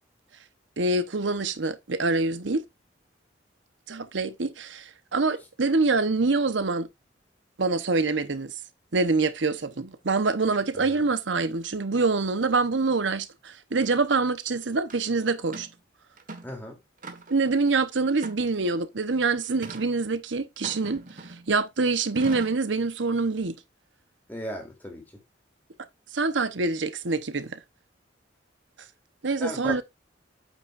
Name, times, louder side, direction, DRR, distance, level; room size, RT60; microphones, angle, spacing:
voice 1, 0.8-2.6 3.9-6.9 7.6-8.5 8.9-15.7 17.3-23.5 26.1-27.6 29.2-29.8, right 3 dB, 90° right, 0.9 m, -25 dB
sound 1, 14.9-15.0 15.5-15.8 16.2-16.6 17.0-17.5 18.2-18.8 19.6-19.9 20.6-21.5 22.2-22.7, right 2 dB, 45° right, 1.4 m, -41 dB
voice 2, 16.4-16.8 24.3-25.0 29.4-29.8, equal, 10° left, 2.8 m, -36 dB
8.7 x 8.3 x 2.5 m
head